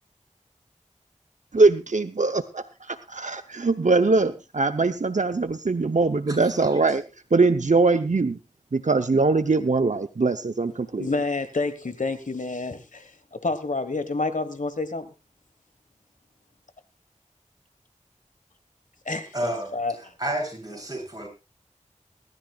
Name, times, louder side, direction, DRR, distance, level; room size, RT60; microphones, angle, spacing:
voice 1, 1.5-7.0 7.3-8.4 8.7-11.1, right 3 dB, 75° right, 8 dB, 0.8 m, -22 dB
voice 2, 6.3-6.8 19.3-19.7 20.2-21.3, right 1 dB, 30° right, 0 dB, 7.5 m, -31 dB
voice 3, 11.0-15.1 19.0-19.9, left 3 dB, 90° left, 11 dB, 1.4 m, -29 dB
22.0 x 13.5 x 2.4 m, 0.27 s
wide cardioid pair, 40°, 13 cm